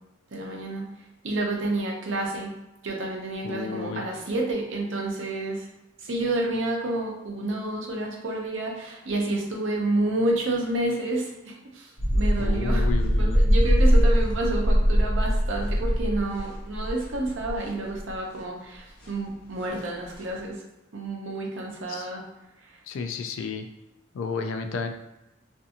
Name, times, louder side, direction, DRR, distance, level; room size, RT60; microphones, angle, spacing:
voice 1, 0.3-0.9 1.2-2.5 2.8-5.7 6.0-12.9 13.1-20.6 20.9-22.2, right 2 dB, 85° right, 0 dB, 0.6 m, -29 dB
voice 2, 3.4-4.1 12.4-13.5 21.9-22.1 22.9-23.7 24.1-24.9, left 5 dB, 85° left, 7 dB, 0.3 m, -32 dB
sound 1, 12.0-18.1 18.4-18.5 19.0-19.1 19.7-19.8 20.1-20.2, equal, 55° left, 0.7 m, -22 dB
2.5 x 2.4 x 2.7 m, 0.94 s
head